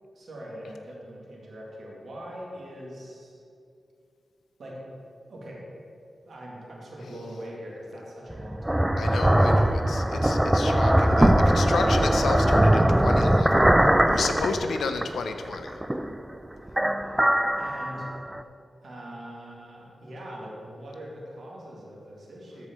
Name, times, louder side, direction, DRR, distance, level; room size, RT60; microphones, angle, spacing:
voice 1, 0.1-3.4 4.6-4.8 5.3-5.6 6.2-10.6 16.8-18.1 18.8-22.7, equal, 65° right, -4 dB, 2.1 m, -42 dB
sound 1, 8.3-15.2 15.5-16.3 16.7-18.4, right 1 dB, 10° right, 0.3 m, -21 dB
voice 2, 9.0-15.8, left 4 dB, 90° left, 7 dB, 0.6 m, -32 dB
13.0 x 4.8 x 4.4 m, 2.5 s
cardioid pair, 75°, 0 cm